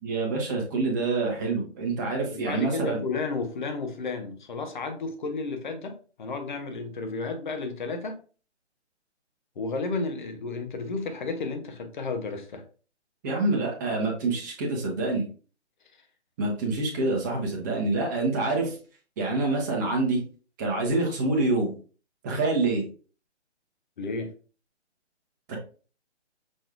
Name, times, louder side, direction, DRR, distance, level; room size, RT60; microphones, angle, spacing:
voice 1, 0.0-3.0 13.2-15.3 16.4-18.8 19.2-20.2 20.6-21.7 22.2-22.8 25.5-25.6, right 3 dB, 15° right, 0 dB, 0.9 m, -26 dB
voice 2, 2.3-8.2 9.6-12.6 24.0-24.3, left 3 dB, 45° left, 6 dB, 1.0 m, -32 dB
6.2 x 3.2 x 2.5 m, 0.38 s
figure-of-eight pair, 150°, 35 cm